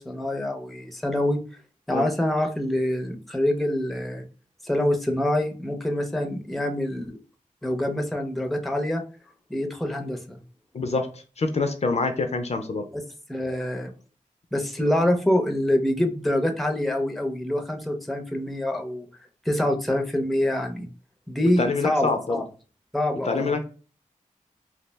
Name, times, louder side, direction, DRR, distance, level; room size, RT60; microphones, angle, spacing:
voice 1, 0.0-1.4 1.9-4.3 4.6-7.2 7.6-9.0 9.5-10.4 12.9-13.0 13.3-13.9 14.5-19.1 19.5-20.9 21.3-22.4 22.9-23.6, left 1 dB, ahead, 4 dB, 0.5 m, -25 dB
voice 2, 10.7-12.8 21.6-22.4 23.3-23.6, left 3 dB, 55° left, 6 dB, 0.4 m, -26 dB
2.3 x 2.0 x 3.3 m, 0.37 s
cardioid pair, 50°, 14 cm